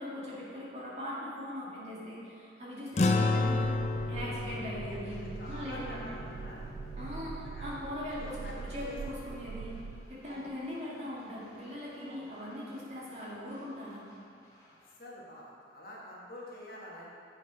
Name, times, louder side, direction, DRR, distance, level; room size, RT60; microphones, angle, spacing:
voice 1, 0.0-3.8 4.1-6.1 7.0-9.7 10.1-14.0, left 1 dB, 40° right, -7 dB, 2.0 m, -40 dB
sound 1, 3.0-7.6, left 3 dB, 40° left, 0.4 m, -32 dB
sound 2, 3.5-10.0, right 5 dB, 65° right, 0.3 m, -43 dB
sound 3, 3.9-14.9, equal, 20° left, 1.3 m, -54 dB
voice 2, 5.4-6.9 7.4-7.7 8.1-9.0 10.3-10.5 12.1-12.3 14.7-17.2, left 1 dB, 55° left, -5 dB, 1.6 m, -47 dB
7.8 x 6.0 x 4.9 m, 2.4 s
head